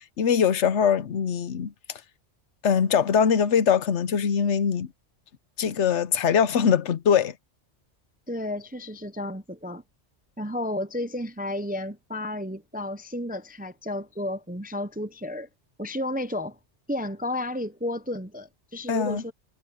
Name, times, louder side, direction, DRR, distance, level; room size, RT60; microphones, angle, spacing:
voice 1, 0.0-1.7 2.6-4.9 5.6-7.3 18.9-19.2, left 7 dB, 75° left, 1.1 m, -22 dB
voice 2, 8.3-9.8 10.4-15.5 15.8-16.6 16.9-19.3, left 1 dB, 10° right, 0.4 m, -32 dB
omnidirectional pair, 1.2 m